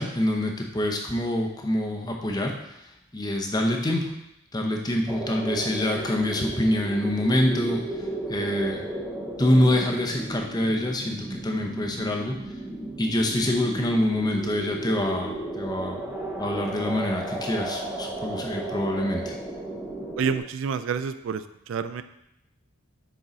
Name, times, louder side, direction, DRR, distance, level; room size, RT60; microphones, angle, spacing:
voice 1, 0.0-2.9 3.1-4.1 4.5-8.8 9.4-12.4 13.0-16.0 16.4-19.4, left 1 dB, 20° left, 2 dB, 0.7 m, -26 dB
sound 1, 5.1-20.4, right 1 dB, 10° right, 0.8 m, -34 dB
voice 2, 20.2-22.0, right 6 dB, 60° right, 12 dB, 0.3 m, -28 dB
6.3 x 4.6 x 4.0 m, 0.84 s
head